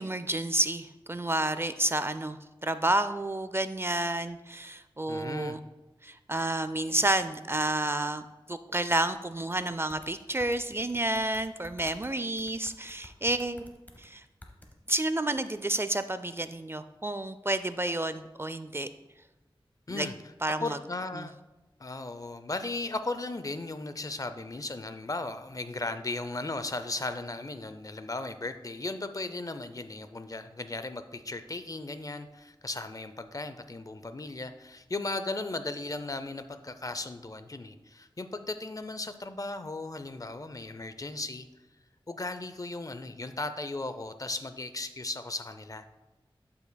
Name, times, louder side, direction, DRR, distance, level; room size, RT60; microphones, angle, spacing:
voice 1, 0.0-5.6 6.0-8.2 8.5-13.7 14.0-14.2 14.9-18.9 19.9-20.1 20.4-20.8 21.2-21.3, right 1 dB, 25° right, 12 dB, 0.3 m, -30 dB
voice 2, 5.1-5.6 19.9-20.2 20.6-21.3 21.8-41.5 42.1-45.9, left 2 dB, 40° left, 10 dB, 0.5 m, -36 dB
sound 1, 9.9-12.1 12.4-14.1 14.4-14.8, left 1 dB, 20° left, 0.9 m, -51 dB
12.0 x 5.8 x 2.2 m, 1.1 s
wide cardioid pair, 55°, 9 cm